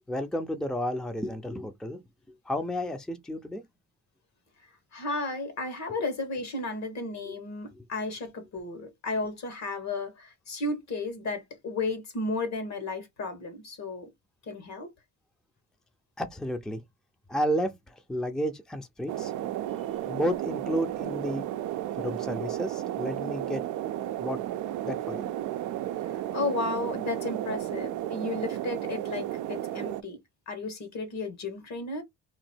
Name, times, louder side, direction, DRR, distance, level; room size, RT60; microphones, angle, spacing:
voice 1, 0.1-2.0 2.5-3.6 5.1-5.2 7.3-7.4 16.2-16.8 17.3-19.3 20.1-21.5 22.0-23.6 24.2-24.4 24.8-25.2, equal, ahead, 0.5 m, -32 dB
voice 2, 4.9-14.1 14.5-14.9 26.1-30.2 30.5-32.0, left 3 dB, 65° left, 1.6 m, -33 dB
sound 1, 19.1-30.0, right 13 dB, 80° right, 0.5 m, -33 dB
3.0 x 2.6 x 4.3 m
cardioid pair, 90°, 30 cm